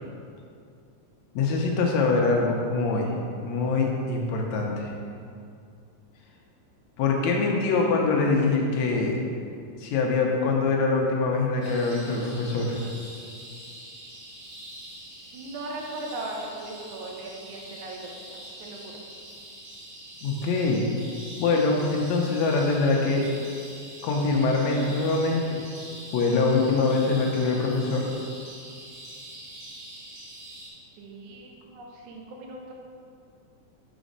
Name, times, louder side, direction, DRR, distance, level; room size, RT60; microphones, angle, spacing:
voice 1, 1.4-3.1 3.4-4.9 7.0-9.2 9.8-12.8 20.2-20.9 21.4-23.3 24.0-25.6 26.1-28.1, left 3 dB, 75° left, 0 dB, 1.7 m, -24 dB
sound 1, 11.6-30.7, right 1 dB, 55° right, 2.4 m, -44 dB
voice 2, 15.3-18.1 18.6-18.9 31.0-32.7, right 2 dB, 75° right, 0 dB, 2.1 m, -38 dB
5.0 x 5.0 x 5.2 m, 2.4 s
omnidirectional pair, 3.7 m